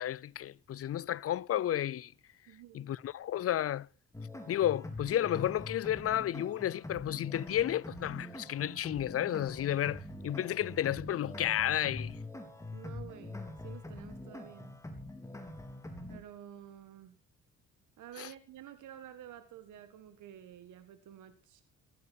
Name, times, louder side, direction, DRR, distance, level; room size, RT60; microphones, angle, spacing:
voice 1, 0.0-2.1 2.7-3.9 4.5-12.2 18.2-18.3, left 11 dB, 50° left, 0.6 m, -32 dB
voice 2, 2.5-2.9 12.7-14.7 16.1-17.2 18.0-21.6, right 11 dB, 80° right, 1.8 m, -51 dB
sound 1, 4.1-16.2, left 1 dB, 10° left, 3.7 m, -44 dB
15.5 x 14.5 x 4.6 m
cardioid pair, 90°, 30 cm